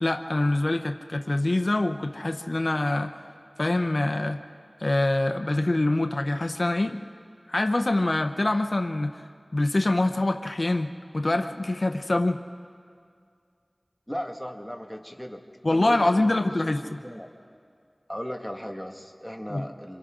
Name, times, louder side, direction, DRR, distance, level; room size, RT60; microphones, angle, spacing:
voice 1, 0.0-3.2 3.6-4.4 4.8-7.0 7.5-9.2 9.5-12.4 15.6-17.0 19.5-19.6, left 2 dB, 70° left, 6 dB, 0.7 m, -25 dB
voice 2, 14.1-15.4 15.7-16.5 16.8-17.3 18.1-20.0, equal, 5° left, 1 dB, 1.8 m, -36 dB
27.0 x 26.5 x 3.8 m, 2.2 s
wide cardioid pair, 40°, 0 cm